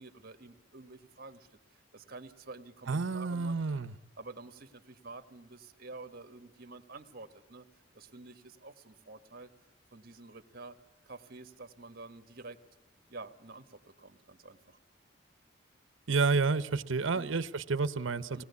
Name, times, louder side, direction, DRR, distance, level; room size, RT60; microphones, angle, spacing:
voice 1, 0.0-3.7 4.2-7.7 7.9-9.5 9.9-10.8 11.0-12.6 13.1-14.8 17.1-17.3 18.3-18.4, right 3 dB, 50° right, 1.5 m, -49 dB
voice 2, 2.9-3.9 16.1-18.4, right 4 dB, 75° right, 0.8 m, -30 dB
24.0 x 19.0 x 8.3 m
head